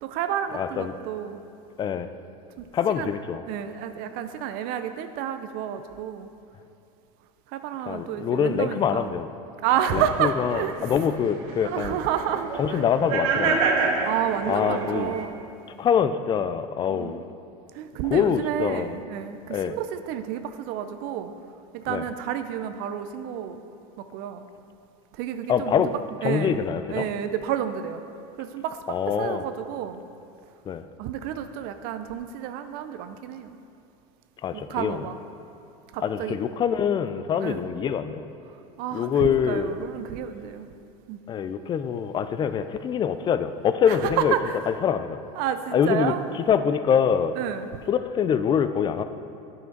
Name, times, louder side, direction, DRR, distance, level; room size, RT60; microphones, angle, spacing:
voice 1, 0.0-1.4 2.6-2.7 3.0-3.1 3.5-6.3 7.5-9.1 9.6-10.9 11.6-12.8 14.0-15.4 16.9-17.2 17.7-21.3 21.7-23.6 24.0-24.4 25.1-25.8 26.2-26.6 26.9-28.0 28.4-30.0 31.0-33.5 34.5-35.2 35.9-36.4 37.4-37.6 38.5-40.7 41.1-41.2 43.9-44.6 45.4-46.2 47.4-47.7, right 9 dB, 55° right, 9 dB, 0.5 m, -30 dB
voice 2, 0.5-0.9 1.8-2.1 2.7-3.4 7.9-9.3 9.9-12.0 12.6-13.6 14.5-15.1 15.8-17.2 18.1-19.0 19.5-19.8 21.9-22.0 25.5-25.9 26.2-27.0 28.9-29.4 30.7-30.8 34.4-35.0 36.0-38.2 38.9-39.7 41.3-44.3 44.7-45.2 45.7-46.1 46.5-47.4 47.9-49.0, left 7 dB, 25° left, 11 dB, 0.4 m, -24 dB
sound 1, 9.7-15.2, right 4 dB, 75° right, 1.1 m, -29 dB
9.8 x 5.7 x 4.6 m, 2.7 s
supercardioid pair, 110°, 18 cm